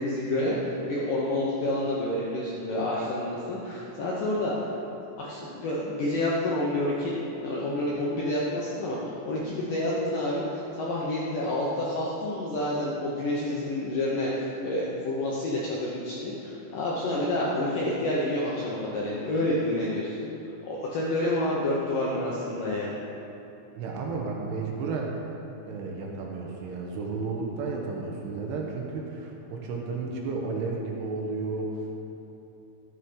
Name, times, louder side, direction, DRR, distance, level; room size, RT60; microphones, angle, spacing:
voice 1, 0.0-4.7 5.2-20.2 20.6-23.0, left 1 dB, 75° left, -5 dB, 2.0 m, -29 dB
voice 2, 23.8-25.2 25.6-31.8, right 4 dB, 75° right, -1 dB, 2.8 m, -32 dB
12.5 x 7.3 x 5.2 m, 3.0 s
omnidirectional pair, 5.3 m